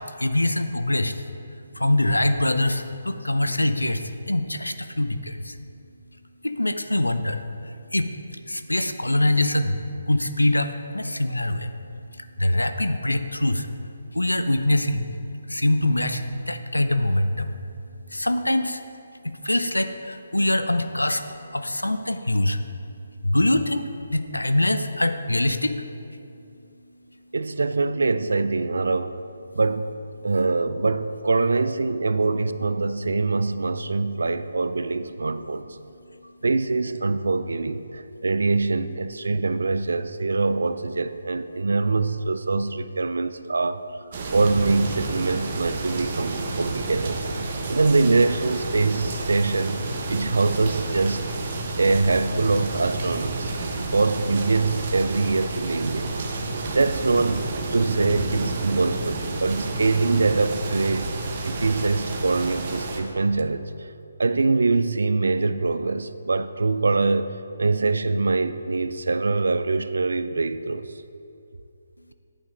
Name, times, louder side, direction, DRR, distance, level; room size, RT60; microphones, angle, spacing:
voice 1, 0.2-1.1 1.8-5.5 6.4-7.4 7.9-8.1 8.5-9.8 10.1-11.7 12.4-13.7 14.1-15.1 15.5-17.5 18.1-18.8 19.2-21.2 21.5-22.6 23.2-25.7, left 1 dB, 85° left, 9 dB, 0.7 m, -23 dB
voice 2, 27.3-29.2 29.6-29.9 30.2-35.7 36.4-43.8 44.3-47.2 47.7-51.2 51.8-53.5 53.9-56.1 56.7-61.1 61.5-63.7 64.2-67.3 67.6-70.9, right 3 dB, 65° right, 12 dB, 0.4 m, -23 dB
sound 1, 44.1-63.0, right 3 dB, 40° right, 1.2 m, -30 dB
10.5 x 8.6 x 3.8 m, 2.6 s
figure-of-eight pair, 145°, 0 cm